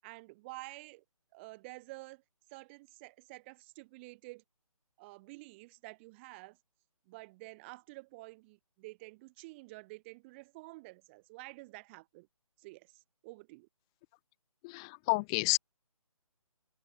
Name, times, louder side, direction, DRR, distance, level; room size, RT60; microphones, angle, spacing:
voice 1, 0.0-1.0 1.3-2.2 2.5-4.4 5.0-6.6 7.1-12.3 12.6-13.7, right 23 dB, 20° right, 7.7 m, -50 dB
voice 2, 14.6-15.6, left 26 dB, 10° left, 0.5 m, -30 dB
figure-of-eight pair, 145°, 19 cm